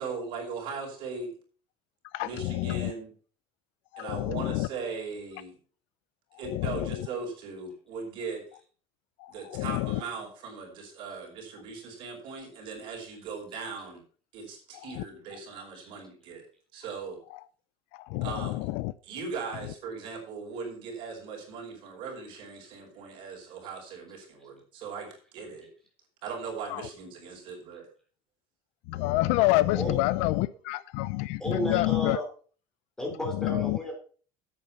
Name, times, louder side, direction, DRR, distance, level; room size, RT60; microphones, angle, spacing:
voice 1, 0.0-1.3 2.2-3.1 4.0-5.5 6.4-8.5 9.3-14.0 14.3-16.4 16.7-17.2 18.2-18.7 19.0-25.7 26.2-27.9, right 4 dB, 50° right, 5.2 m, -39 dB
voice 2, 2.1-2.9 3.9-4.7 6.5-6.9 9.2-10.0 15.0-15.1 17.9-18.9 26.7-26.9 28.9-32.2 33.4-33.8, left 19 dB, 75° left, 0.6 m, -28 dB
voice 3, 31.4-32.3 33.0-33.9, equal, 5° left, 3.5 m, -33 dB
9.6 x 8.6 x 5.8 m
cardioid pair, 175°, 11 cm